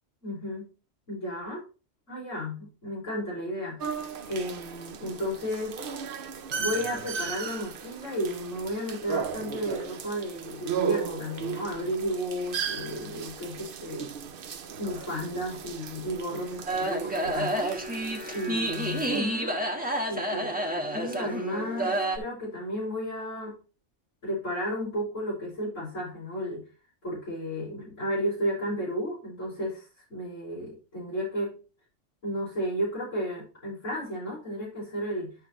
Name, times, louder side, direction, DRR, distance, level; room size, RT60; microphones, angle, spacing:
voice 1, 0.2-0.7 1.1-1.6 2.1-5.8 6.6-14.1 14.8-17.7 18.3-19.5 20.1-20.5 20.9-23.6 24.2-26.6 27.0-31.6 32.2-35.4, equal, 85° left, -10 dB, 6.3 m, -33 dB
sound 1, 3.8-19.2, right 6 dB, 55° right, 0.8 m, -36 dB
sound 2, 16.7-22.2, right 1 dB, 5° right, 1.3 m, -29 dB
11.5 x 6.5 x 3.1 m, 0.33 s
omnidirectional pair, 1.3 m